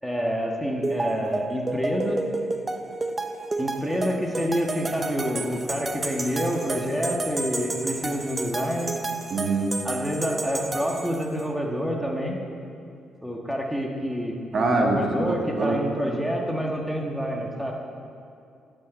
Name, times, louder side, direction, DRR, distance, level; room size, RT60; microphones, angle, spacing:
voice 1, 0.0-2.2 3.6-9.0 9.8-12.4 13.2-17.7, equal, ahead, -1 dB, 1.6 m, -28 dB
sound 1, 0.8-11.4, right 2 dB, 25° right, 0.7 m, -31 dB
voice 2, 9.3-9.8 14.5-15.8, right 2 dB, 50° right, 1 dB, 1.7 m, -24 dB
14.0 x 5.6 x 8.8 m, 2.5 s
cardioid pair, 90°, 0 cm